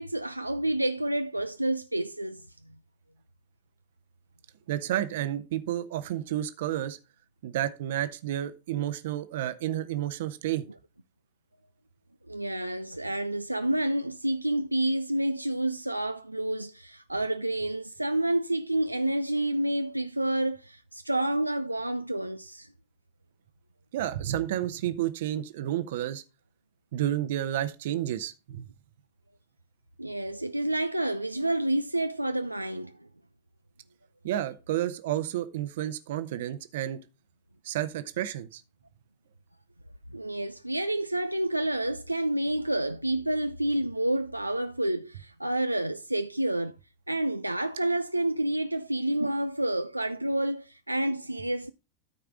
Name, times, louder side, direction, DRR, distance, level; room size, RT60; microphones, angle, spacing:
voice 1, 0.0-2.4 12.3-22.7 30.0-32.9 40.1-46.7 47.1-51.7, right 1 dB, 85° right, 0.3 m, -29 dB
voice 2, 4.7-7.0 7.4-10.6 23.9-26.2 26.9-28.7 34.2-37.0 37.6-38.6, right 12 dB, 55° right, 0.8 m, -31 dB
13.0 x 4.6 x 3.6 m
figure-of-eight pair, 90°, 0 cm